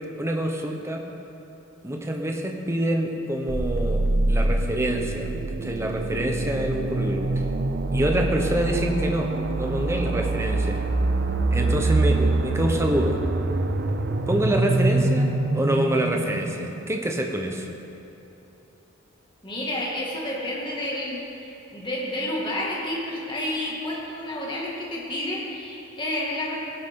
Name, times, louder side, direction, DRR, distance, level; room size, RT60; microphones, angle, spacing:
voice 1, 0.2-1.0 1.8-7.5 7.9-10.8 11.5-13.2 14.3-17.7, right 1 dB, 15° right, 3 dB, 1.0 m, -26 dB
sound 1, 3.5-17.2, right 2 dB, 55° right, 0.6 m, -25 dB
voice 2, 19.4-26.6, left 1 dB, 25° left, -4 dB, 2.2 m, -30 dB
18.0 x 11.0 x 3.8 m, 2.9 s
head